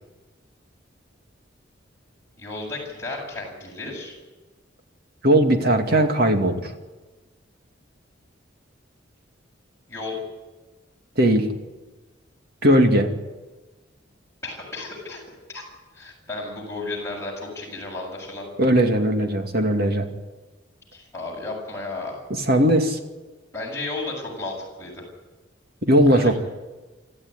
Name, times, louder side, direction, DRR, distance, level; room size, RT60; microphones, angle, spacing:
voice 1, 2.4-4.2 9.9-10.2 14.4-15.2 15.5-15.6 15.9-18.5 20.9-22.2 23.5-25.0 26.1-26.4, left 2 dB, 15° left, -3 dB, 7.4 m, -33 dB
voice 2, 5.2-6.7 11.2-11.5 12.6-13.1 18.6-20.1 22.3-23.0 25.8-26.4, right 1 dB, 55° right, 4 dB, 2.5 m, -18 dB
26.5 x 13.5 x 9.8 m, 1.2 s
head